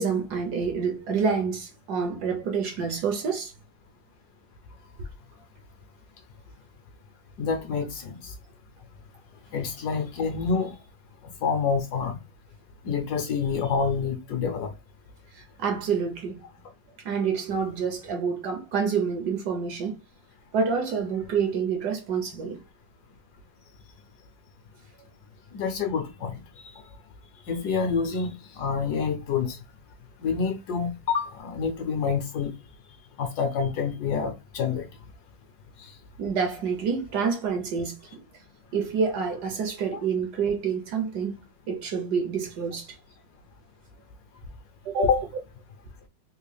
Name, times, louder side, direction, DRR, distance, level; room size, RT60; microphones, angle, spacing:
voice 1, 0.0-3.5 15.3-16.4 17.0-20.0 20.5-22.6 36.2-38.2 38.7-43.0 44.8-45.1, right 6 dB, 70° right, 1.1 m, -28 dB
voice 2, 7.4-8.3 9.5-10.7 11.4-12.2 12.8-14.7 25.5-26.3 26.7-26.8 27.5-28.3 28.6-29.6 30.2-32.5 33.2-34.9 45.0-45.2, left 5 dB, 70° left, 1.0 m, -27 dB
3.6 x 2.3 x 3.2 m
omnidirectional pair, 2.0 m